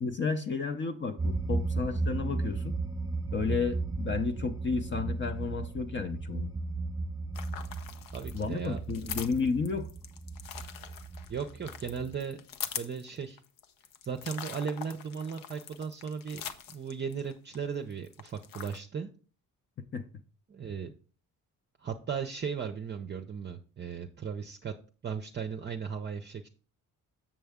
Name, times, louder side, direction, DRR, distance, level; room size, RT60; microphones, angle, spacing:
voice 1, 0.0-2.8 3.3-6.5 8.3-9.9 19.9-20.0, left 5 dB, 35° left, 0.6 m, -32 dB
sound 1, 1.2-12.2, right 3 dB, 10° right, 0.9 m, -35 dB
sound 2, 7.3-17.6 17.9-18.8, left 8 dB, 80° left, 0.8 m, -43 dB
voice 2, 8.1-9.2 11.3-12.4 12.8-13.4 14.0-19.1 20.5-20.9 21.8-24.7 25.0-26.5, right 6 dB, 30° right, 0.6 m, -36 dB
7.3 x 6.8 x 3.5 m
cardioid pair, 130°, 34 cm